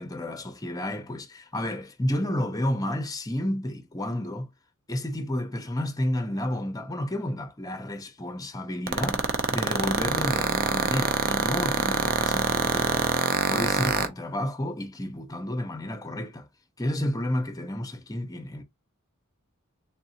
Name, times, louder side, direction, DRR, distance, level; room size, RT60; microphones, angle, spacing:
voice 1, 0.0-4.5 4.9-13.1 13.5-16.5 16.8-18.6, left 1 dB, 15° left, 0.7 m, -31 dB
sound 1, 8.9-14.1, right 5 dB, 45° right, 0.6 m, -24 dB
3.6 x 2.6 x 2.8 m
head